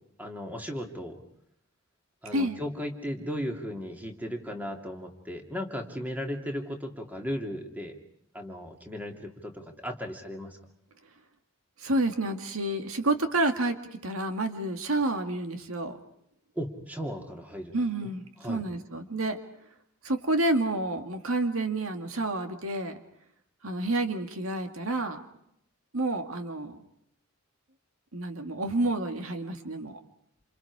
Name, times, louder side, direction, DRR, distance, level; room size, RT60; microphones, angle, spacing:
voice 1, 0.2-1.2 2.2-7.9 8.3-10.6 16.6-17.7 18.0-18.1 18.4-18.6, equal, 10° right, 2 dB, 2.8 m, -36 dB
voice 2, 11.8-16.0 17.7-19.4 20.0-23.0 23.6-25.2 25.9-26.8 28.1-30.0, right 2 dB, 75° right, 6 dB, 2.0 m, -29 dB
28.5 x 28.0 x 4.9 m, 0.75 s
head